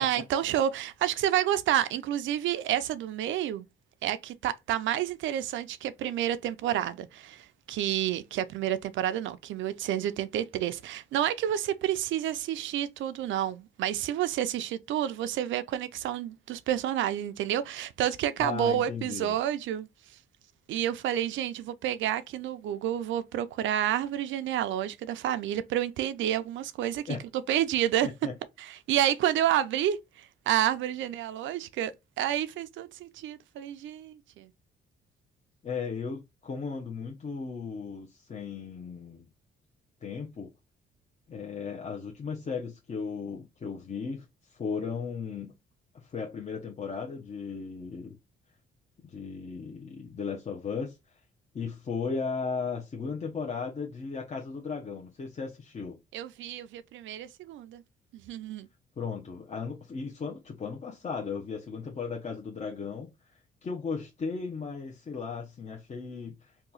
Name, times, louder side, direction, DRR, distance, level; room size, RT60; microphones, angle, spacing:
voice 1, 0.0-3.6 4.0-19.9 20.7-27.2 27.5-28.1 28.6-31.9 32.2-34.5 56.1-57.8 58.1-58.7, right 11 dB, 75° right, 0.4 m, -29 dB
voice 2, 18.4-19.3 27.1-27.2 28.0-28.3 35.6-39.3 40.0-40.5 41.3-45.5 45.9-48.2 49.0-51.0 51.5-56.0 59.0-63.1 63.6-66.5, left 5 dB, 35° left, 0.7 m, -36 dB
2.8 x 2.3 x 3.8 m
cardioid pair, 90°, 20 cm